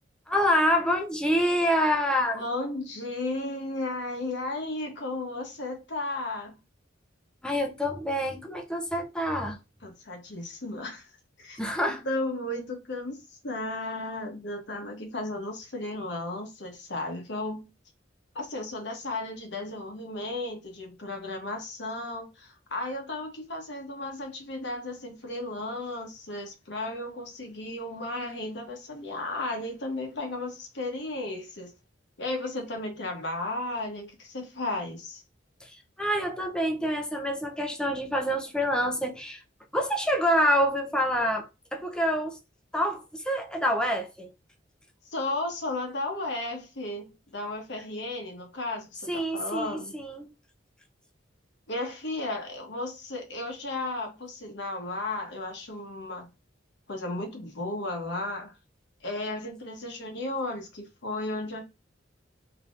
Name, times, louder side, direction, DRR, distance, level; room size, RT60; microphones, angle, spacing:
voice 1, 0.3-2.4 7.4-9.6 11.6-12.0 35.6-39.4 39.7-42.4 42.7-44.3 49.1-50.3, equal, 5° left, 0.6 m, -27 dB
voice 2, 2.3-6.6 9.8-11.1 11.4-11.6 11.9-17.7 18.3-31.7 32.2-35.2 45.0-47.1 47.3-50.0 51.7-56.3 56.9-58.5 59.0-61.6, left 2 dB, 65° left, 1.0 m, -34 dB
3.5 x 2.9 x 2.5 m
head